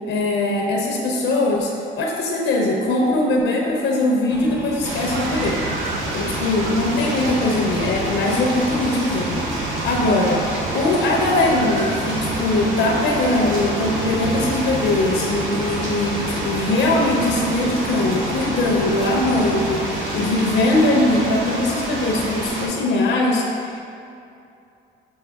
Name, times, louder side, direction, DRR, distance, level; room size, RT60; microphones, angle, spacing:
voice 1, 0.1-1.7 2.0-5.6 6.1-9.4 9.8-10.4 10.7-23.8, left 2 dB, 85° left, -1 dB, 0.6 m, -21 dB
sound 1, 4.3-19.8, equal, 10° right, 0.6 m, -35 dB
sound 2, 4.8-22.7, right 2 dB, 80° right, 0.9 m, -27 dB
Screaming, 5.0-6.1 6.5-7.2 7.9-8.5 9.0-9.2 9.7-10.7 11.5-12.5, right 3 dB, 60° right, 0.5 m, -36 dB
7.1 x 3.2 x 2.3 m, 2.6 s
cardioid pair, 90°, 20 cm